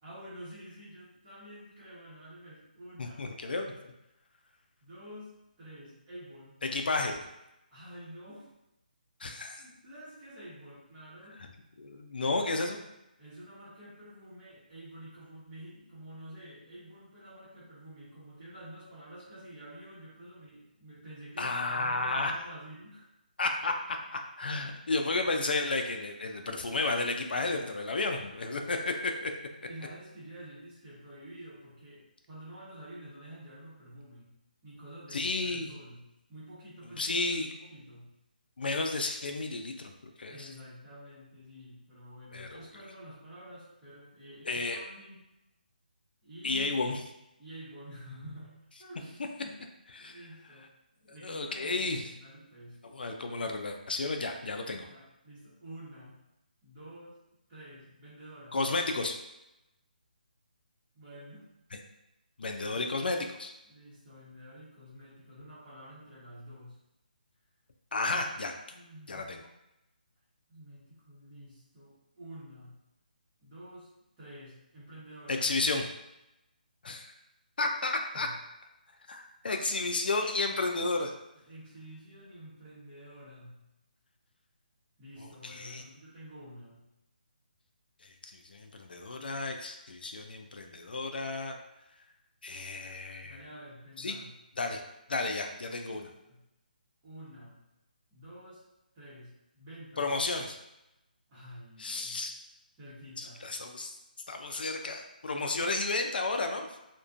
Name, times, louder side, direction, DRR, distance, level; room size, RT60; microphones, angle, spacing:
voice 1, 0.0-3.2 4.8-6.5 7.7-8.5 9.2-11.4 13.2-23.1 29.6-34.3 34.6-36.0 36.3-38.1 40.3-45.2 46.2-46.7 47.4-49.6 50.0-50.7 51.0-52.8 54.9-56.2 56.6-57.1 57.5-58.6 60.9-61.5 63.6-66.8 68.7-69.2 70.5-72.7 73.4-73.9 74.2-75.5 78.1-78.3 81.3-83.6 85.0-86.8 93.2-94.3 95.9-96.4 97.0-97.6 98.1-98.6 98.9-100.1 101.3-102.2 102.7-103.4 105.3-105.8, right 1 dB, 15° right, -10 dB, 0.9 m, -49 dB
voice 2, 3.0-3.9 6.6-7.2 9.2-9.6 11.8-12.8 21.4-22.3 23.4-29.3 35.1-35.7 37.0-37.5 38.6-39.9 40.2-40.5 42.3-42.6 44.5-44.8 46.4-47.0 50.0-50.2 51.2-52.0 52.9-54.9 58.5-59.2 62.4-63.5 67.9-68.5 69.1-69.4 75.3-75.8 76.8-77.1 77.6-78.3 79.1-81.1 85.5-85.8 88.2-91.6 92.4-93.4 94.0-94.2 94.6-94.8 95.1-96.1 100.0-100.6 101.8-102.3 103.2-103.9 104.3-106.7, left 3 dB, 75° left, 4 dB, 0.3 m, -32 dB
2.4 x 2.1 x 2.4 m, 0.91 s
hypercardioid pair, 165°, 5 cm